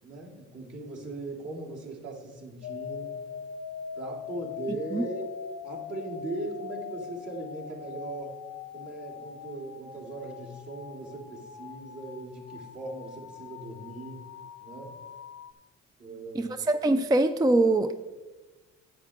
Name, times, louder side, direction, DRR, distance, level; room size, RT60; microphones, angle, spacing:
voice 1, 0.0-3.2 3.9-5.3 5.6-8.4 8.7-14.2 14.6-14.9 16.0-16.6, right 2 dB, 55° right, -4 dB, 3.0 m, -39 dB
sound 1, 2.6-15.5, left 7 dB, 60° left, 0.7 m, -42 dB
voice 2, 16.4-17.9, right 2 dB, 15° right, 9 dB, 0.4 m, -23 dB
10.0 x 8.4 x 3.6 m, 1.2 s
cardioid pair, 90°, 30 cm